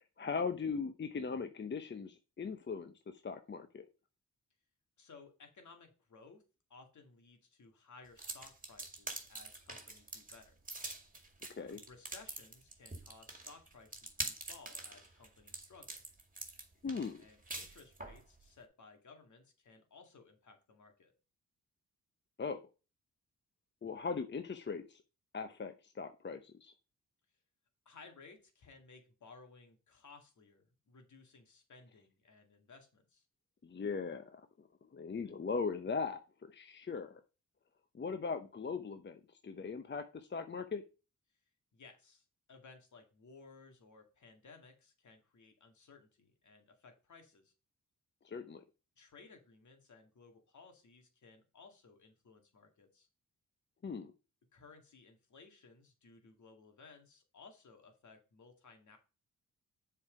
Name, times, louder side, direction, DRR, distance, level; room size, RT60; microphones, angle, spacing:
voice 1, 0.0-3.9 11.5-11.8 16.8-17.2 22.4-22.6 23.8-25.0 25.3-26.7 33.6-34.7 34.9-37.2 37.9-40.8 48.2-48.6 53.8-54.1, left 5 dB, 35° left, 9 dB, 0.8 m, -39 dB
voice 2, 5.0-6.4 6.7-10.6 11.7-16.0 17.2-21.1 27.9-33.2 41.7-47.5 49.0-53.1 54.5-59.0, left 4 dB, 60° left, 5 dB, 2.2 m, -59 dB
sound 1, 8.2-18.2, right 2 dB, 25° right, 2.1 m, -45 dB
7.1 x 4.7 x 5.1 m, 0.32 s
cardioid pair, 55°, 32 cm